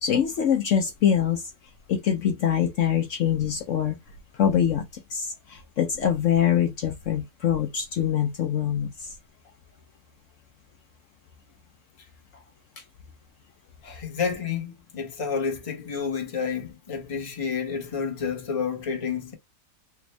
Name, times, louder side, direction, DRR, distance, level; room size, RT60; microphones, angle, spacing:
voice 1, 0.0-1.4 1.9-4.0 4.4-9.1, left 9 dB, 65° left, 1.0 m, -24 dB
voice 2, 13.8-19.3, left 6 dB, 25° left, 0.9 m, -30 dB
3.4 x 2.5 x 3.1 m
omnidirectional pair, 1.5 m